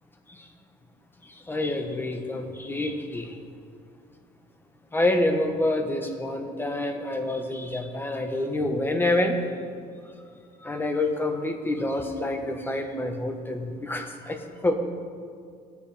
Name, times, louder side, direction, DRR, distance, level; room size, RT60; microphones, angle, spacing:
voice 1, 1.5-3.3 4.9-9.4 10.6-14.7, left 1 dB, 10° left, 4 dB, 1.3 m, -27 dB
18.5 x 8.4 x 3.5 m, 2.2 s
cardioid pair, 110°, 17 cm